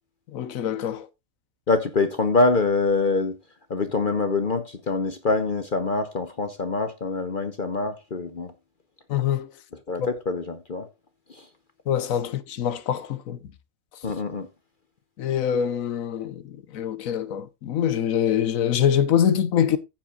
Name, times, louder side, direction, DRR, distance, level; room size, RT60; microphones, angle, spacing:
voice 1, 0.3-1.1 9.1-9.5 11.9-13.4 15.2-19.8, left 9 dB, 70° left, 1.2 m, -24 dB
voice 2, 1.7-3.3 3.7-8.5 9.9-10.9 11.3-11.5 14.0-14.5, left 3 dB, 40° left, 0.9 m, -25 dB
15.0 x 7.4 x 2.4 m
omnidirectional pair, 1.5 m